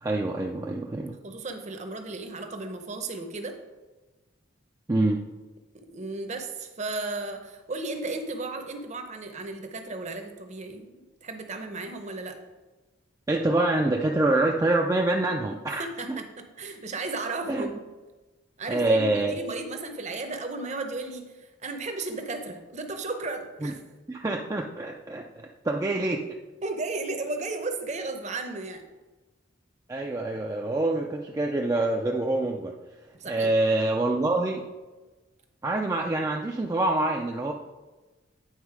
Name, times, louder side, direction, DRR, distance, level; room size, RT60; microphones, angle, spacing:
voice 1, 0.0-1.2 4.9-5.2 13.3-16.2 17.5-17.7 18.7-19.5 23.6-23.7 24.1-25.2 25.6-26.3 29.9-32.7 33.2-34.6 35.6-37.5, right 2 dB, 15° right, 0 dB, 0.4 m, -26 dB
voice 2, 1.2-3.6 5.9-12.4 15.8-17.7 18.6-23.8 26.6-28.8 33.2-33.5, right 3 dB, 35° right, 5 dB, 0.8 m, -34 dB
9.0 x 4.0 x 4.8 m, 1.2 s
head